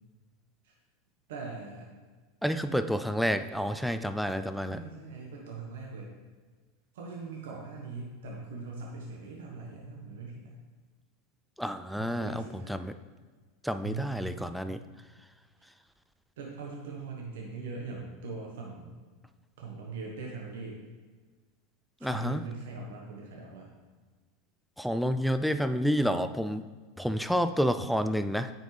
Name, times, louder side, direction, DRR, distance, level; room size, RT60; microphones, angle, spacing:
voice 1, 1.3-1.9 2.7-2.9 4.7-6.1 6.9-10.5 11.9-12.9 13.8-14.9 16.4-19.0 19.6-20.8 22.0-23.7, right 4 dB, 75° right, -1 dB, 1.2 m, -41 dB
voice 2, 2.4-4.8 11.6-12.9 13.6-14.8 22.0-22.4 24.8-26.6 27.0-28.5, equal, ahead, 10 dB, 0.4 m, -29 dB
8.9 x 5.2 x 3.3 m, 1.4 s
hypercardioid pair, 110°, 0 cm